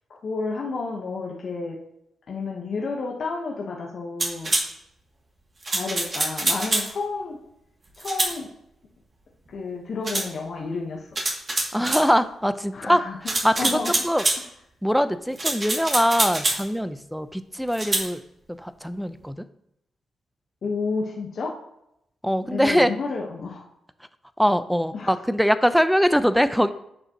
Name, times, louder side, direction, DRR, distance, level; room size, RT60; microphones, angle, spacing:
voice 1, 0.2-1.8 2.3-4.5 5.7-7.4 8.0-8.5 9.5-11.0 12.7-13.1 13.5-13.9 20.6-21.5 22.4-23.6 24.9-25.1, left 4 dB, 60° left, -1 dB, 1.3 m, -30 dB
sound 1, 4.2-4.7 5.6-6.9 8.0-8.3 10.0-10.3 11.2-12.1 13.3-14.4 15.4-16.6 17.7-18.1, right 2 dB, 45° right, 2.6 m, -25 dB
voice 2, 11.7-14.2 14.8-18.2 18.6-19.4 22.2-22.9 24.4-26.7, equal, ahead, 12 dB, 0.7 m, -22 dB
10.5 x 6.6 x 3.0 m, 0.79 s
hypercardioid pair, 45°, 0 cm